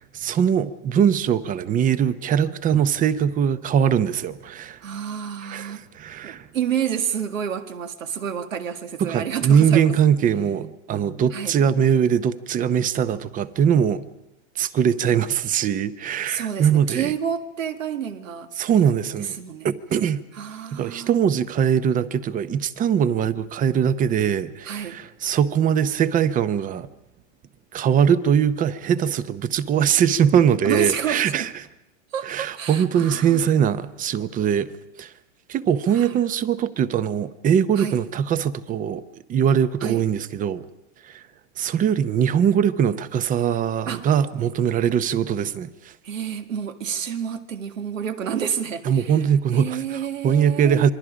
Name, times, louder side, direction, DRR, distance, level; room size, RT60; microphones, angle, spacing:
voice 1, 0.0-4.8 5.4-6.5 9.0-14.0 14.6-17.1 18.6-19.4 19.6-20.2 20.7-26.9 27.7-31.5 32.2-34.7 35.0-35.1 35.5-39.0 39.3-40.6 41.0-41.2 41.6-45.9 48.8-49.8 50.2-50.9, right 8 dB, 20° right, 15 dB, 0.8 m, -21 dB
voice 2, 4.8-5.8 6.2-9.9 11.3-11.6 16.3-18.9 19.2-19.7 20.3-21.1 24.6-25.0 30.6-31.5 32.1-33.5 35.9-36.2 37.8-38.0 39.8-40.1 43.9-44.1 46.0-49.3 49.5-50.9, right 8 dB, 85° right, 8 dB, 1.9 m, -29 dB
27.5 x 22.0 x 5.1 m, 0.90 s
hypercardioid pair, 125°, 38 cm